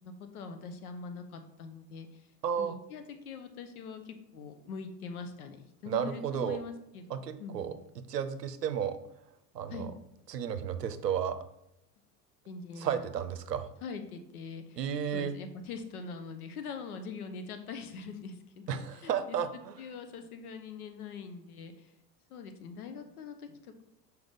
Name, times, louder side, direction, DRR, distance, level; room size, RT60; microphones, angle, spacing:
voice 1, 0.0-2.2 2.6-7.8 9.7-9.9 12.5-13.1 13.8-14.8 15.1-19.4 19.8-21.9 22.3-23.8, left 5 dB, 65° left, 8 dB, 0.9 m, -43 dB
voice 2, 2.4-2.8 5.9-6.6 7.1-9.0 9.5-9.9 10.3-11.4 12.8-13.7 14.8-15.4 18.7-19.7, right 8 dB, 75° right, 10 dB, 0.7 m, -33 dB
6.2 x 4.8 x 3.5 m, 0.82 s
figure-of-eight pair, 75°, 48 cm